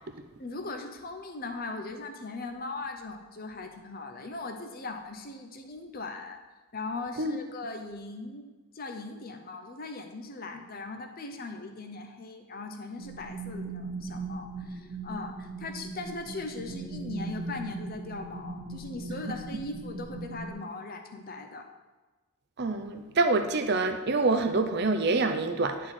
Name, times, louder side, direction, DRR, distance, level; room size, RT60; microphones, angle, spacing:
voice 1, 0.4-6.4 6.7-21.7, left 3 dB, 40° left, 5 dB, 0.8 m, -39 dB
sound 1, 13.0-20.5, right 3 dB, 75° right, 1.7 m, -39 dB
voice 2, 22.6-25.9, right 3 dB, 50° right, 7 dB, 0.6 m, -26 dB
10.0 x 4.7 x 4.4 m, 1.2 s
head